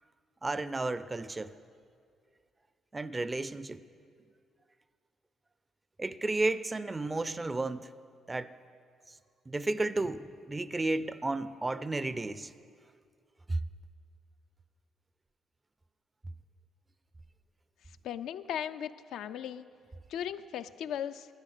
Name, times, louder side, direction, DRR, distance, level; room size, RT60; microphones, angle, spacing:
voice 1, 0.4-1.5 2.9-3.8 6.0-7.9 8.3-8.6 9.1-9.2 9.5-12.5 13.5-13.6, right 2 dB, 20° right, 16 dB, 0.4 m, -32 dB
voice 2, 18.0-19.7 20.1-21.3, left 9 dB, 80° left, 11 dB, 0.4 m, -37 dB
12.0 x 10.0 x 6.5 m, 2.2 s
cardioid pair, 90°, 0 cm